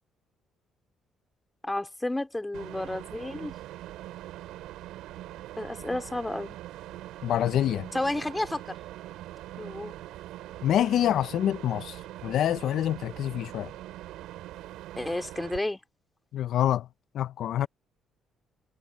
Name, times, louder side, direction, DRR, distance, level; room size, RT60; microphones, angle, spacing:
voice 1, 1.6-3.5 5.6-6.6 7.9-8.8 9.6-10.1 14.9-15.8, left 2 dB, 10° left, 3.0 m, -31 dB
sound 1, 2.5-15.6, right 14 dB, 90° right, 5.8 m, -42 dB
voice 2, 7.2-7.9 10.6-13.7 16.3-16.9 17.1-17.7, left 11 dB, 65° left, 0.4 m, -26 dB
cardioid pair, 135°, 0 cm